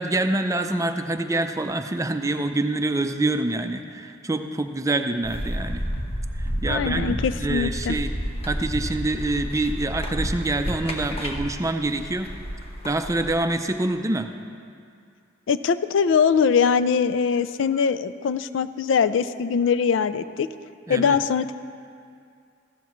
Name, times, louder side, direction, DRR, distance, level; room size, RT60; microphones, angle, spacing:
voice 1, 0.0-5.8 6.4-8.1 8.5-12.3 12.8-14.3 20.9-21.2, right 2 dB, 15° right, 7 dB, 0.5 m, -26 dB
sound 1, 5.2-13.3, equal, 30° left, 1.1 m, -30 dB
voice 2, 6.7-8.0 15.5-20.5 20.9-21.5, left 6 dB, 75° left, 12 dB, 0.4 m, -22 dB
15.5 x 13.0 x 3.1 m, 2.3 s
head